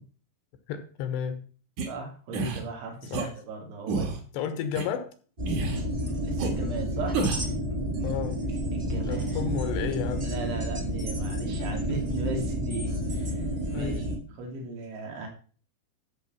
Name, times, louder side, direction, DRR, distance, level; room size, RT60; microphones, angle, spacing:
voice 1, 0.7-1.4 3.1-3.3 4.3-5.1 8.0-8.5 9.1-10.3 11.9-12.0 13.7-14.1, left 8 dB, 75° left, 9 dB, 3.0 m, -32 dB
sound 1, 1.8-1.9 2.3-2.6 3.1-3.3 3.9-4.2 4.8-4.9 5.5-5.8 6.4-6.5 7.1-7.5, right 4 dB, 50° right, 2.7 m, -29 dB
voice 2, 1.8-4.1 6.2-7.2 8.7-9.6 10.2-13.4 13.7-14.0 14.3-15.3, right 3 dB, 85° right, 2 dB, 5.0 m, -36 dB
sound 2, 5.4-14.2, equal, 35° right, 0.9 m, -30 dB
13.5 x 4.9 x 7.1 m, 0.41 s
omnidirectional pair, 5.3 m